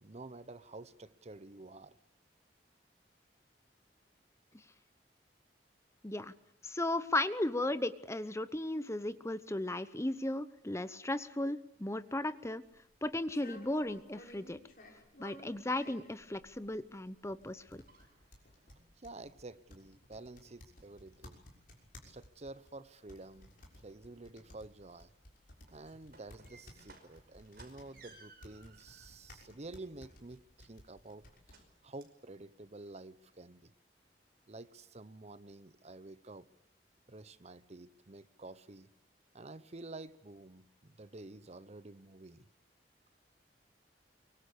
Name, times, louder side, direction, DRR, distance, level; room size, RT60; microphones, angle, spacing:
voice 1, 0.0-2.0 18.8-21.4 22.0-23.5 23.8-25.1 25.7-31.2 31.8-33.7 34.5-36.5 37.1-38.9 39.3-42.4, right 2 dB, 40° right, 0.9 m, -50 dB
voice 2, 6.0-6.3 6.6-12.6 13.0-14.6 15.2-17.8, left 1 dB, 15° left, 1.0 m, -35 dB
sound 1, 12.7-31.6, left 1 dB, 55° left, 6.4 m, -57 dB
sound 2, 17.5-18.8 19.3-19.6 19.9-20.4 20.7-21.3 21.8-21.9 22.2-22.9 23.2-23.3 25.5-29.1 29.6-30.7 31.5-31.7 32.0-32.2 32.6-32.7 33.0-33.1 33.6-33.7, right 3 dB, 60° right, 5.5 m, -61 dB
24.0 x 24.0 x 8.6 m
head